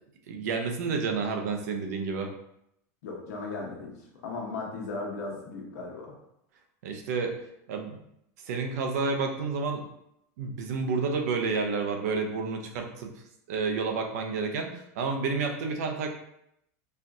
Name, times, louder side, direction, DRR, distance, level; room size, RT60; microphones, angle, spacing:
voice 1, 0.3-2.3 6.8-7.3 7.7-8.0 8.5-9.8 10.4-13.1 13.5-16.1, right 4 dB, 80° right, 4 dB, 0.6 m, -30 dB
voice 2, 3.0-4.0 4.2-6.1, left 3 dB, 90° left, -1 dB, 1.0 m, -36 dB
4.3 x 2.4 x 2.6 m, 0.78 s
supercardioid pair, 150°, 8 cm